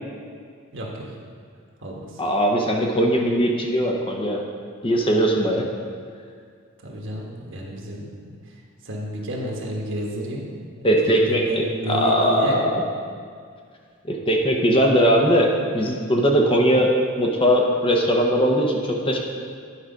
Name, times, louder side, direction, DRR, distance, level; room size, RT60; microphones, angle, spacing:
voice 1, 0.7-1.1 1.8-2.2 6.8-8.6 8.8-10.4 10.7-10.9 11.2-12.6, equal, 60° right, -1 dB, 1.3 m, -31 dB
voice 2, 2.2-4.4 4.8-5.7 10.8-12.8 14.1-19.2, equal, 25° left, 1 dB, 0.8 m, -20 dB
10.0 x 4.8 x 5.2 m, 2.1 s
head